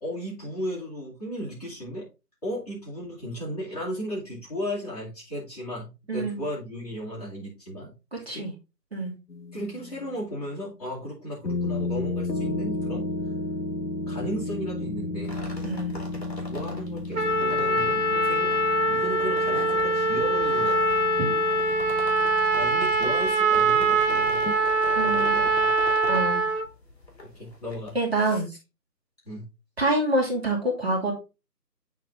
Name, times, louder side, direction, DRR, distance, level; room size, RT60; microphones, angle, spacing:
voice 1, 0.0-2.1 2.4-7.9 8.2-8.5 9.5-13.1 14.1-15.4 16.4-18.5 18.9-20.8 22.5-24.5 25.0-25.7 27.3-28.6 29.2-29.4, equal, 25° left, -7 dB, 2.3 m, -35 dB
voice 2, 6.1-6.4 8.3-8.5 8.9-9.1 15.6-15.9 21.2-21.3 25.0-25.6 26.1-26.4 27.9-28.5 29.8-31.1, right 1 dB, 40° right, -1 dB, 2.2 m, -26 dB
sound 1, 9.3-10.3 11.5-23.2 24.5-24.6, left 2 dB, 90° left, 0.9 m, -33 dB
sound 2, 15.2-28.0, left 1 dB, 40° left, 2.4 m, -42 dB
Trumpet, 17.2-26.7, right 2 dB, 60° right, 1.3 m, -23 dB
8.2 x 3.8 x 3.7 m, 0.28 s
figure-of-eight pair, 165°, 49 cm